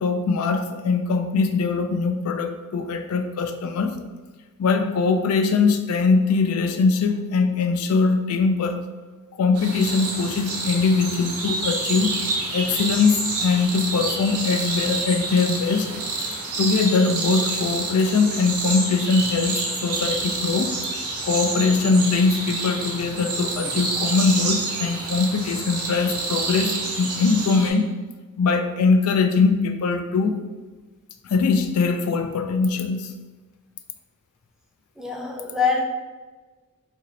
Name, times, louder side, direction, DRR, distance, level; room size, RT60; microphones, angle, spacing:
voice 1, 0.0-4.0 4.6-8.8 9.4-12.2 12.5-15.9 16.6-20.7 21.2-27.9 28.4-30.4 31.3-33.1, left 4 dB, 75° left, 7 dB, 0.3 m, -21 dB
sound 1, 9.5-27.7, right 3 dB, 90° right, 0.9 m, -28 dB
voice 2, 35.0-35.8, left 5 dB, ahead, 0 dB, 0.4 m, -24 dB
3.0 x 2.6 x 3.9 m, 1.3 s
head